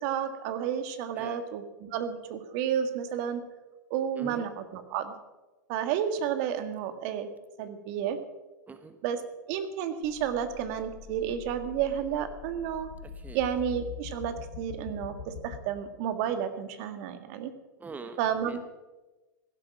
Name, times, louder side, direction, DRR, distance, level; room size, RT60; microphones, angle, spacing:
voice 1, 0.0-3.4 3.9-5.1 5.7-7.3 7.6-8.2 9.0-9.2 9.5-12.9 13.3-17.5 18.2-18.6, right 9 dB, 55° right, 9 dB, 1.8 m, -31 dB
voice 2, 8.7-9.0 13.0-13.4 17.8-18.6, right 4 dB, 15° right, 9 dB, 1.1 m, -44 dB
sound 1, 10.0-15.6, left 8 dB, 65° left, 3.4 m, -44 dB
16.5 x 11.5 x 6.2 m, 1.1 s
hypercardioid pair, 100°, 10 cm